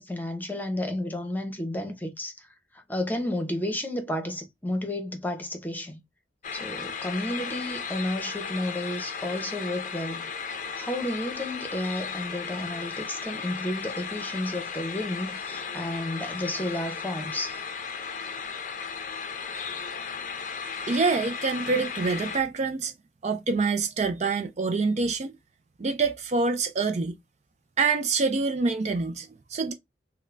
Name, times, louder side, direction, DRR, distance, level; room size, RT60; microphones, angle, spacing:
voice 1, 0.0-2.5 2.7-6.0 6.5-10.3 10.8-17.6, left 1 dB, 10° left, 0.7 m, -32 dB
sound 1, 6.4-22.4, left 6 dB, 45° left, 0.5 m, -35 dB
voice 2, 20.8-22.9 23.2-25.3 25.8-27.2 27.8-29.7, right 4 dB, 40° right, 0.4 m, -26 dB
3.6 x 2.1 x 3.2 m
head